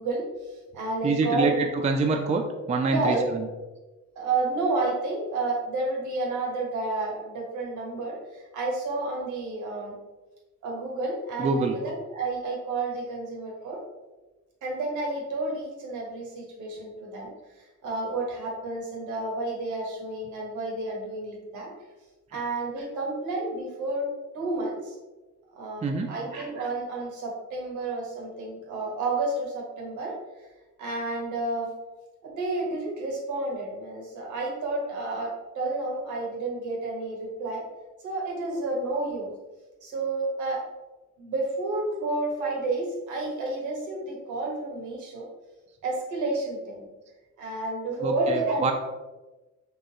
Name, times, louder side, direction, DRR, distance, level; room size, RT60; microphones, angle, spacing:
voice 1, 0.0-1.7 2.9-3.3 4.1-9.9 10.6-13.8 14.6-17.3 17.8-21.7 22.3-24.1 24.3-25.0 25.6-30.1 30.8-31.7 32.2-37.6 38.0-39.3 39.8-40.6 41.2-45.3 45.8-46.9 47.4-48.7, right 2 dB, 80° right, -1 dB, 1.2 m, -30 dB
voice 2, 1.0-2.4 2.7-3.5 11.4-11.8 22.3-22.4 25.8-26.1 48.0-48.7, right 3 dB, 25° right, 3 dB, 0.4 m, -25 dB
3.8 x 3.0 x 2.8 m, 1.1 s
cardioid pair, 90°, 30 cm